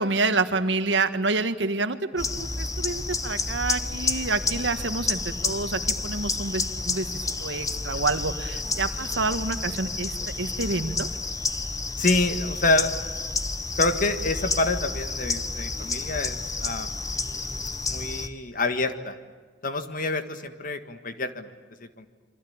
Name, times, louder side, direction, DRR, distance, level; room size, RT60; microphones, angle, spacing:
voice 1, 0.0-11.1, right 3 dB, 85° right, 10 dB, 1.6 m, -28 dB
sound 1, 2.2-18.3, left 3 dB, 20° left, 1.3 m, -30 dB
voice 2, 12.0-12.9 13.8-17.0 17.8-19.2 19.6-21.5 21.8-22.1, left 2 dB, 50° left, 9 dB, 1.8 m, -27 dB
27.5 x 24.5 x 8.8 m, 1.5 s
head